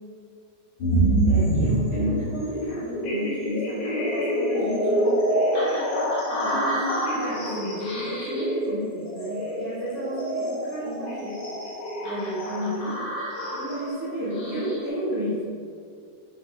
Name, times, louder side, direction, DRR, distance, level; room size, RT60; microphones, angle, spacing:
sound 1, 0.8-14.9, right 1 dB, 65° left, 1.3 m, -26 dB
voice 1, 1.2-5.2 6.3-11.4 12.0-13.0 13.5-15.4, equal, 70° right, -11 dB, 1.3 m, -32 dB
5.7 x 5.7 x 3.5 m, 2.3 s
omnidirectional pair, 4.7 m